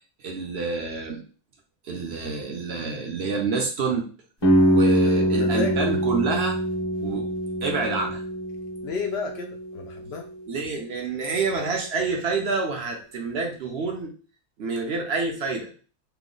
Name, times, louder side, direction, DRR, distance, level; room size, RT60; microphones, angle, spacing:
voice 1, 0.2-1.2 1.8-4.1 4.6-6.6 7.0-7.3 7.6-8.2 10.5-14.1 14.6-15.7, right 4 dB, 60° right, 1 dB, 0.7 m, -28 dB
sound 1, 4.4-10.2, right 1 dB, 25° left, 0.6 m, -24 dB
voice 2, 4.8-5.1 5.4-5.8 8.8-10.3, left 5 dB, 70° left, 3 dB, 0.6 m, -32 dB
3.0 x 2.0 x 3.7 m, 0.38 s
omnidirectional pair, 1.5 m